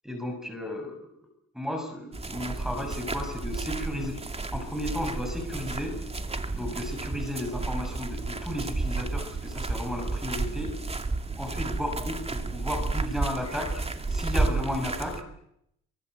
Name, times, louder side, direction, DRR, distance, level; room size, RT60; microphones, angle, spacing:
voice 1, 0.0-1.0 1.5-4.2 4.5-5.9 6.5-10.8 11.4-13.8 14.1-15.2, left 1 dB, ahead, 2 dB, 6.4 m, -34 dB
sound 1, 2.1-15.2, right 3 dB, 20° right, 2.6 m, -32 dB
27.5 x 24.0 x 8.0 m, 0.78 s
cardioid pair, 90°, 30 cm